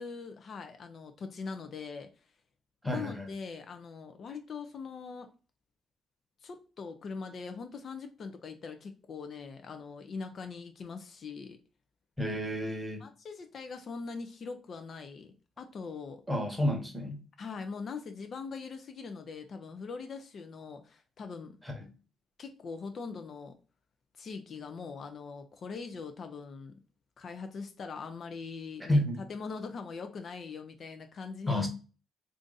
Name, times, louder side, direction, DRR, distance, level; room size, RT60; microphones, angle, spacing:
voice 1, 0.0-2.1 2.8-5.3 6.4-11.6 13.0-16.2 17.4-21.6 22.4-23.5 24.2-26.7 27.2-31.7, left 5 dB, 50° left, 0.4 m, -42 dB
voice 2, 2.8-3.3 12.2-13.0 16.3-17.2 21.6-21.9 28.9-29.2 31.5-31.7, left 1 dB, 5° right, 0.9 m, -30 dB
2.5 x 2.4 x 3.8 m
cardioid pair, 90°, 0 cm